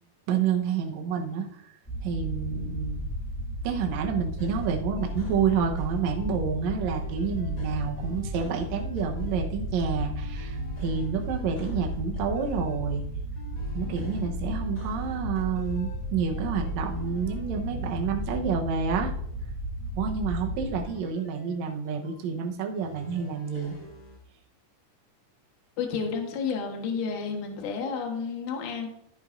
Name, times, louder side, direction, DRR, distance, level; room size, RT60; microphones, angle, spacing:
voice 1, 0.3-1.5 2.0-3.0 3.6-13.0 13.7-19.1 20.0-23.8, right 6 dB, 65° right, 2 dB, 2.2 m, -29 dB
sound 1, 1.9-20.8, equal, 5° left, 3.4 m, -34 dB
sound 2, 4.4-6.4 6.8-9.4 10.2-12.8 13.4-16.0 16.3-19.2 20.6-22.1 22.7-24.2, left 1 dB, 35° left, 4.2 m, -47 dB
voice 2, 25.8-28.9, left 5 dB, 70° left, 2 dB, 2.8 m, -31 dB
14.0 x 9.8 x 2.6 m, 0.72 s
omnidirectional pair, 3.8 m